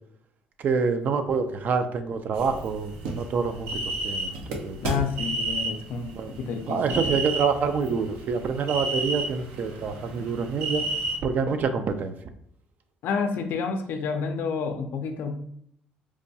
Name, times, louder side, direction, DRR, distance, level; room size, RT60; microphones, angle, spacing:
voice 1, 0.6-4.4 4.6-4.8 6.1-6.3 6.7-10.8 11.2-12.1, right 5 dB, 55° right, 8 dB, 0.4 m, -26 dB
sound 1, 2.3-11.2, right 2 dB, 85° right, 0.7 m, -32 dB
voice 2, 4.8-6.1 6.4-6.8 13.0-15.4, left 5 dB, 65° left, 6 dB, 0.5 m, -29 dB
4.6 x 2.2 x 2.7 m, 0.68 s
supercardioid pair, 85°, 4 cm